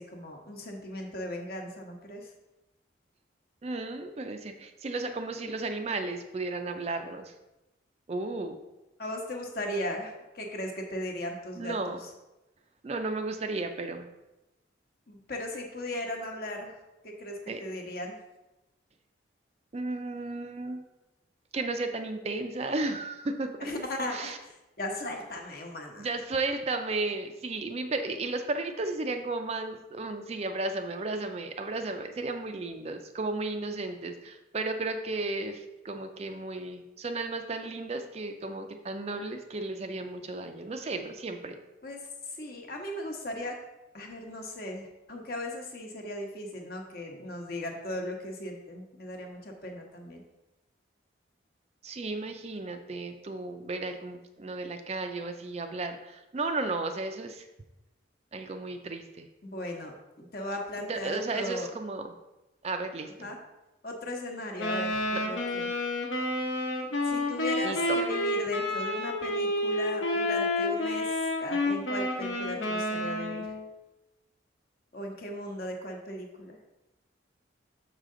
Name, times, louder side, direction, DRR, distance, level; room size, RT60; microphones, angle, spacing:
voice 1, 0.0-2.3 9.0-12.1 15.1-16.8 17.0-18.1 23.6-26.1 41.8-42.0 42.3-43.6 43.9-50.2 59.4-61.8 63.2-63.4 63.8-65.7 67.0-73.4 74.9-76.6, left 1 dB, 50° left, 2 dB, 1.0 m, -37 dB
voice 2, 3.6-7.3 8.1-8.6 11.6-12.0 12.8-14.1 17.5-17.6 19.7-20.8 21.5-23.7 24.1-24.4 26.0-41.6 51.8-57.5 58.3-59.3 60.9-62.1 62.6-63.3 65.1-65.2 67.6-67.8, right 3 dB, 35° right, 7 dB, 0.4 m, -34 dB
Wind instrument woodwind instrument, 64.6-73.6, left 1 dB, 75° left, 1.1 m, -30 dB
6.5 x 4.9 x 3.7 m, 1.0 s
head